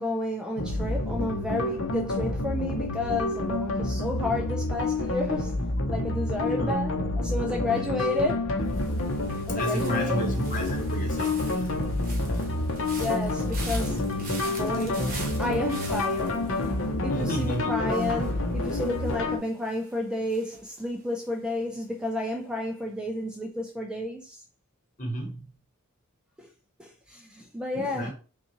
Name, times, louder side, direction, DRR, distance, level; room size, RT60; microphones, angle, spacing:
voice 1, 0.0-8.5 9.5-10.2 12.8-14.0 14.5-15.1 15.4-16.4 17.0-24.4 26.4-26.5 26.8-28.1, left 2 dB, 5° right, 0.4 m, -31 dB
sound 1, 0.6-19.4, left 2 dB, 60° left, 0.7 m, -28 dB
sound 2, 8.6-21.7 21.9-22.4, right 3 dB, 40° right, 1.2 m, -45 dB
voice 2, 9.5-12.0 17.1-17.7 25.0-25.5 27.7-28.1, equal, 40° left, 1.2 m, -32 dB
5.4 x 2.4 x 2.9 m
head